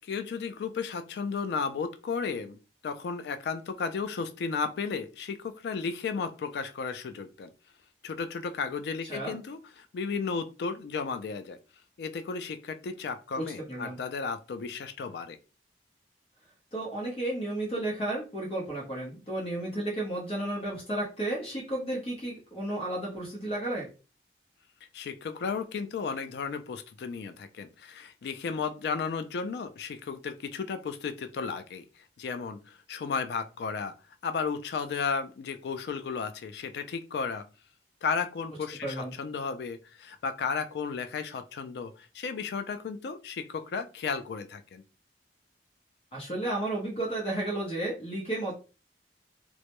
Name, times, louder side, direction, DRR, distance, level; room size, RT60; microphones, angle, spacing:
voice 1, 0.0-2.6 2.8-7.5 8.0-11.6 12.0-15.4 24.9-31.8 32.2-33.9 34.2-37.5 38.0-44.8, left 5 dB, 65° left, 9 dB, 0.3 m, -34 dB
voice 2, 16.7-23.9 38.8-39.1 46.1-48.5, right 1 dB, 30° left, -3 dB, 0.7 m, -32 dB
2.1 x 2.0 x 2.9 m, 0.33 s
head